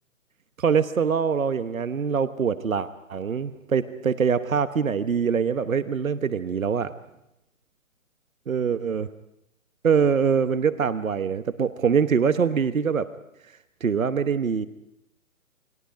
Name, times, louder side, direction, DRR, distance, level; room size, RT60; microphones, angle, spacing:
voice 1, 0.6-6.9 8.5-9.1 9.8-13.1 13.8-14.7, right 6 dB, 75° right, 12 dB, 1.2 m, -24 dB
29.0 x 20.0 x 5.1 m, 0.83 s
figure-of-eight pair, 140°, 41 cm